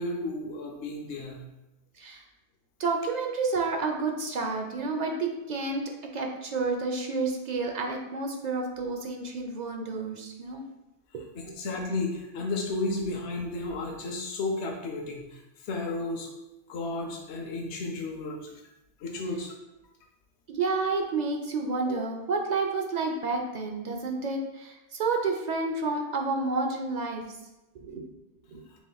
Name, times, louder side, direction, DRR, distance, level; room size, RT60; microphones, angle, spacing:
voice 1, 0.0-1.4 11.4-16.3 16.7-18.6 19.0-19.6, left 2 dB, 70° left, 1 dB, 0.9 m, -33 dB
voice 2, 2.8-5.8 6.1-10.6 11.1-11.2 11.6-11.7 20.5-27.2 27.8-28.0 28.5-28.6, right 3 dB, 55° right, 2 dB, 0.5 m, -30 dB
6.9 x 3.1 x 2.3 m, 0.98 s
omnidirectional pair, 1.2 m